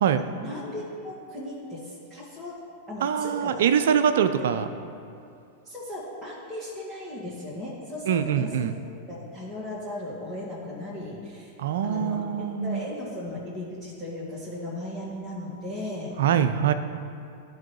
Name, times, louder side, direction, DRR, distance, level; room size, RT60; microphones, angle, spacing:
voice 1, 0.2-2.5 2.9-3.6 4.1-4.5 5.6-8.7 9.1-11.5 11.8-16.1, left 1 dB, 5° right, -11 dB, 1.9 m, -37 dB
voice 2, 3.0-4.7 8.1-8.8 11.6-12.9 16.2-16.7, right 8 dB, 65° right, 10 dB, 0.4 m, -23 dB
13.5 x 4.7 x 3.1 m, 2.5 s
figure-of-eight pair, 95°, 0 cm